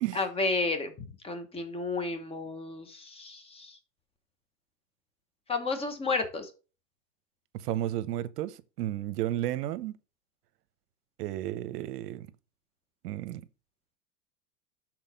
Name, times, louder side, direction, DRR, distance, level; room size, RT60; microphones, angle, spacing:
voice 1, 0.1-3.8 5.5-6.5, left 3 dB, 10° left, 0.9 m, -32 dB
voice 2, 7.5-10.0 11.2-12.3 13.0-13.5, right 13 dB, 70° right, 0.9 m, -33 dB
6.4 x 4.0 x 5.7 m
supercardioid pair, 140°, 48 cm